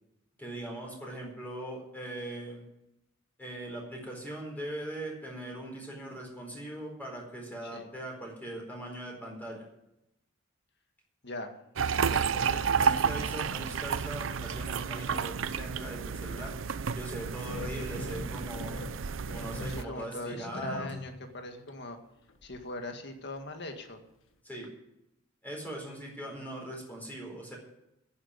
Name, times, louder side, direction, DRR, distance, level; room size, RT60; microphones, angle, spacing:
voice 1, 0.4-2.6 3.4-9.6 12.3-16.6 16.9-18.8 19.3-20.9 24.4-24.7 25.4-27.6, right 1 dB, 10° left, -1 dB, 4.4 m, -40 dB
sound 1, 11.8-19.8, right 6 dB, 75° right, 0.6 m, -31 dB
voice 2, 12.0-13.1 19.7-22.0 22.4-24.0, left 2 dB, 60° left, 5 dB, 1.9 m, -41 dB
sound 2, 17.5-21.3 21.7-21.8 22.3-23.0 23.4-23.5 23.9-24.0, left 2 dB, 80° left, 1.3 m, -43 dB
11.0 x 8.6 x 9.6 m, 0.85 s
head